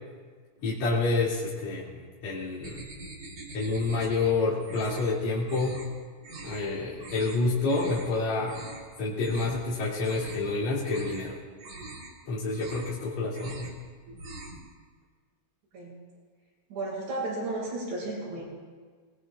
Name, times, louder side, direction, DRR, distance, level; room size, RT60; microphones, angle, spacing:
voice 1, 0.6-2.9 3.5-5.8 6.4-8.6 9.0-11.4 12.3-13.7, left 3 dB, 40° left, -9 dB, 3.3 m, -28 dB
sound 1, 2.6-4.3 4.6-5.1 5.4-5.9 6.2-6.6 7.0-7.4 7.7-8.1 8.4-8.9 9.2-9.6 9.9-10.5 10.8-11.3 11.6-12.1 12.4-13.0 13.3-13.8 14.1-14.6, right 2 dB, 40° right, 2.3 m, -43 dB
voice 2, 16.7-18.4, right 2 dB, 65° right, -5 dB, 8.9 m, -33 dB
28.0 x 20.5 x 2.5 m, 1.6 s
omnidirectional pair, 5.7 m